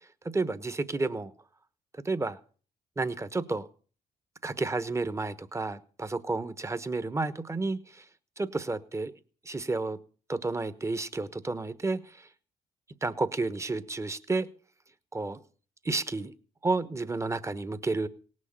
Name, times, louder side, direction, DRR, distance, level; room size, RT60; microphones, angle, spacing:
voice 1, 0.2-1.3 1.9-2.4 3.0-3.7 4.4-8.0 8.4-9.1 9.4-10.0 10.3-12.3 13.0-14.5 15.1-15.4 15.8-16.3 16.6-18.1, right 3 dB, 20° right, 13 dB, 1.2 m, -31 dB
18.0 x 6.4 x 8.7 m, 0.41 s
cardioid pair, 80°, 15 cm